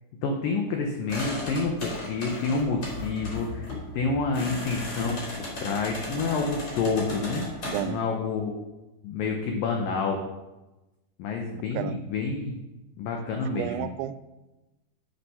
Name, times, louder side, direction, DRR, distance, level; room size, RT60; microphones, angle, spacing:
voice 1, 0.2-3.7 3.9-7.4 7.8-8.5 9.0-10.2 11.2-12.6 13.0-13.9, left 4 dB, 85° left, 2 dB, 1.9 m, -28 dB
sound 1, 1.1-7.8, left 1 dB, 35° left, 3.7 m, -36 dB
voice 2, 13.5-14.2, right 12 dB, 85° right, 12 dB, 2.9 m, -31 dB
8.1 x 7.0 x 5.5 m, 1.1 s
omnidirectional pair, 5.2 m